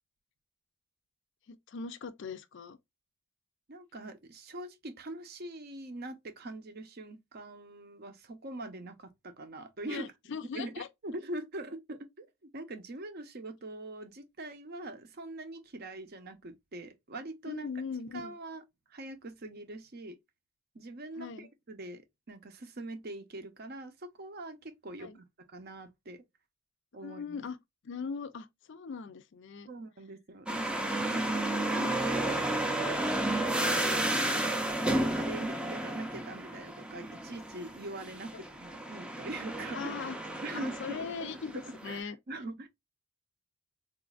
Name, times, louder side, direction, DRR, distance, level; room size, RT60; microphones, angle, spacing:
voice 1, 1.5-2.8 9.9-10.9 17.5-18.3 21.2-21.5 25.0-25.2 27.0-27.6 27.8-29.7 38.3-38.4 39.7-40.2 40.5-42.2, left 5 dB, 55° left, 0.4 m, -40 dB
voice 2, 3.7-10.1 10.5-17.7 18.1-18.6 18.9-20.2 20.7-26.2 26.9-27.4 29.7-30.5 31.1-33.1 34.1-34.4 35.1-39.9 40.4-42.7, right 2 dB, 45° right, 0.6 m, -43 dB
sound 1, 30.5-42.0, right 1 dB, 5° right, 0.4 m, -32 dB
3.9 x 2.5 x 2.3 m
head